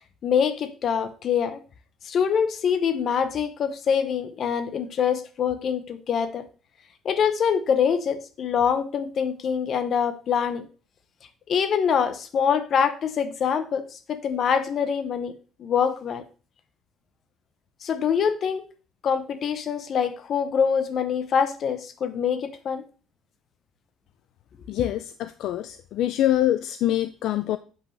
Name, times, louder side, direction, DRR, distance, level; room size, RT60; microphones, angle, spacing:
voice 1, 0.2-1.6 2.0-6.4 7.0-10.7 11.5-15.3 15.6-16.2 17.8-18.7 19.0-22.8, left 7 dB, 40° left, 10 dB, 0.7 m, -24 dB
voice 2, 24.7-27.6, left 13 dB, 60° left, 11 dB, 0.3 m, -25 dB
8.4 x 5.5 x 3.2 m, 0.38 s
cardioid pair, 170°, 0 cm